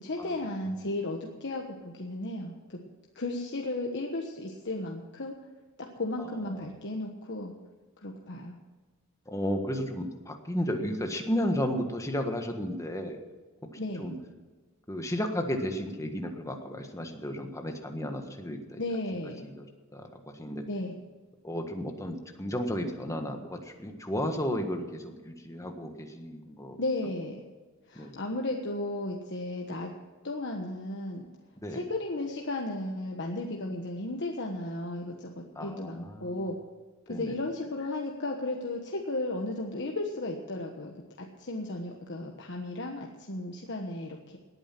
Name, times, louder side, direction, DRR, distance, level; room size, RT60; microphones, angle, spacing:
voice 1, 0.0-2.8 3.1-5.4 5.8-7.5 8.0-8.6 13.8-14.1 18.8-19.4 20.7-21.0 26.8-27.4 27.9-29.9 30.2-31.3 31.7-35.3 35.6-36.6 37.1-44.4, left 2 dB, 55° left, 1 dB, 1.3 m, -34 dB
voice 2, 9.3-13.2 13.6-14.1 14.9-18.8 19.4-19.7 19.9-20.6 21.4-26.8 27.9-28.2 31.6-31.8 35.5-36.5 37.1-37.4, equal, 15° left, 4 dB, 1.5 m, -33 dB
18.5 x 9.2 x 6.0 m, 1.3 s
head